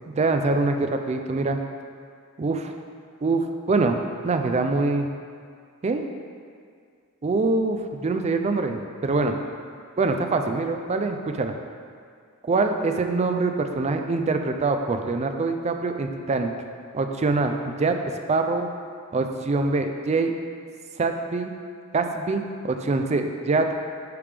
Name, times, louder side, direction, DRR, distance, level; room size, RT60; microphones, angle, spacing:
voice 1, 0.2-1.6 2.4-2.7 3.2-4.0 4.2-5.1 5.8-6.0 7.2-9.4 10.0-11.5 12.4-16.5 16.9-18.7 19.1-20.4 21.0-21.5 21.9-23.7, right 3 dB, 30° right, 6 dB, 0.4 m, -24 dB
10.5 x 3.5 x 3.3 m, 2.1 s
head